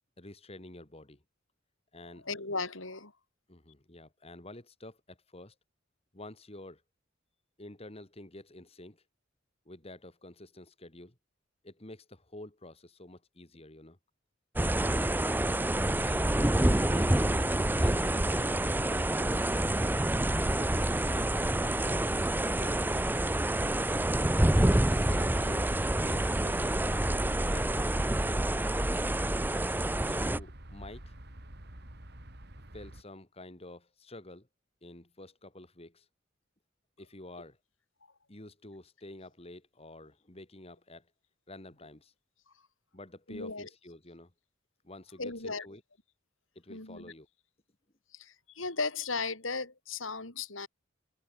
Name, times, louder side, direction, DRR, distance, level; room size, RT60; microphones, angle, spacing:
voice 1, 0.2-1.2 1.9-2.3 3.5-5.5 6.1-6.8 7.6-9.0 9.6-11.1 11.6-14.0 16.0-16.3 16.6-19.4 20.3-22.1 22.4-23.8 24.8-26.8 27.5-28.2 29.7-31.1 32.7-34.5 34.8-36.1 37.0-37.6 38.3-41.1 41.5-42.1 42.9-44.3 44.8-45.8 46.5-47.3, left 1 dB, 30° left, 2.8 m, -49 dB
voice 2, 2.2-3.1 43.3-43.7 45.2-45.7 46.7-47.1 48.1-50.7, left 4 dB, 80° left, 5.5 m, -36 dB
sound 1, 14.6-30.4, right 1 dB, 10° right, 0.6 m, -27 dB
sound 2, 15.5-33.0, right 1 dB, 55° right, 3.5 m, -49 dB
head